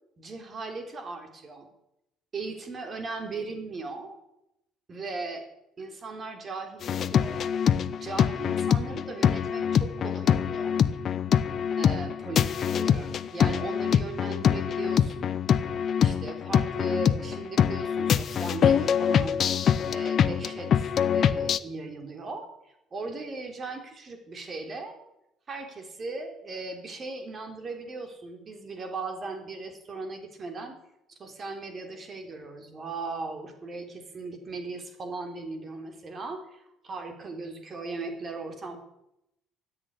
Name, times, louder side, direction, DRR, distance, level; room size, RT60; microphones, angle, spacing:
voice 1, 0.2-1.7 2.3-4.2 4.9-5.5 5.8-10.7 11.8-15.4 16.0-19.4 19.9-25.0 25.5-30.8 31.1-38.8, right 3 dB, 40° right, 5 dB, 3.7 m, -38 dB
sound 1, 6.8-21.6, left 8 dB, 55° left, 0.8 m, -25 dB
14.0 x 8.8 x 10.0 m, 0.85 s
supercardioid pair, 85°, 0 cm